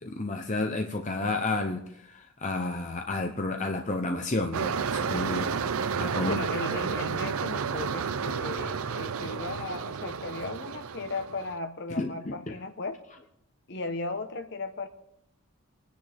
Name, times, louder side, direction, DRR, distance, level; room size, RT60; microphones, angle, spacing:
voice 1, 0.0-6.4 12.0-12.5, left 2 dB, 35° left, 0.7 m, -31 dB
sound 1, 4.5-11.6, right 6 dB, 75° right, 0.5 m, -31 dB
voice 2, 6.2-13.0 13.7-14.9, left 3 dB, 50° left, 1.1 m, -36 dB
26.5 x 10.5 x 3.5 m
head